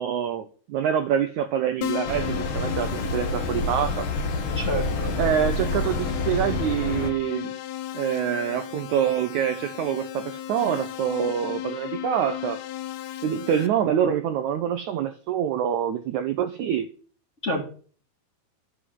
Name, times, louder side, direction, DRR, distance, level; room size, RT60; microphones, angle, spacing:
voice 1, 0.0-4.1 5.2-7.5 7.9-12.6 13.2-16.9, right 9 dB, 85° right, 1.7 m, -26 dB
Keyboard (musical), 1.8-13.7, left 12 dB, 80° left, 2.9 m, -35 dB
sound 1, 2.1-7.1, left 2 dB, 45° left, 1.8 m, -28 dB
voice 2, 4.6-5.1 17.4-17.6, equal, 25° left, 1.9 m, -28 dB
11.5 x 7.7 x 8.0 m
omnidirectional pair, 4.6 m